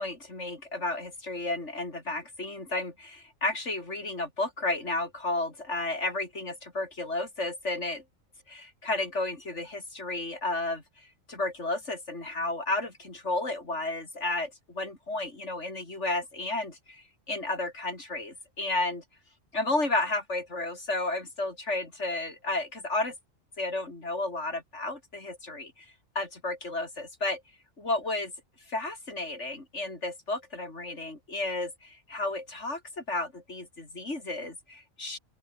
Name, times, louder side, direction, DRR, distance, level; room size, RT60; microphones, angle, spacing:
voice 1, 0.0-8.0 8.5-19.0 19.5-23.1 23.6-27.4 27.8-28.3 28.7-35.2, left 2 dB, 65° left, 4.9 m, -32 dB
open air
omnidirectional pair, 1.3 m